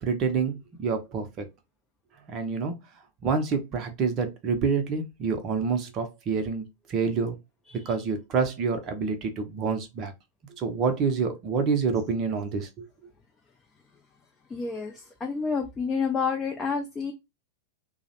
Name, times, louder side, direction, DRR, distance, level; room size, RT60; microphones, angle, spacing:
voice 1, 0.0-1.4 2.3-2.7 3.2-7.4 7.9-10.1 10.6-12.9, right 5 dB, 35° right, 0.6 m, -27 dB
voice 2, 14.5-17.1, left 5 dB, 20° left, 0.4 m, -29 dB
2.4 x 2.0 x 2.7 m
figure-of-eight pair, 90°, 0 cm